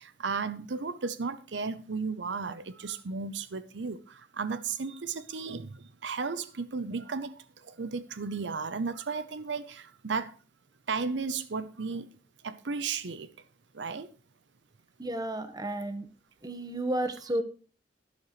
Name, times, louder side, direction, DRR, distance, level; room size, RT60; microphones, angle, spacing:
voice 1, 0.0-10.4 10.9-12.2 12.4-13.3 13.7-14.1, right 4 dB, 80° right, 0.7 m, -34 dB
voice 2, 15.0-16.0 16.4-17.4, right 1 dB, 20° right, 1.2 m, -32 dB
12.0 x 11.0 x 3.1 m
head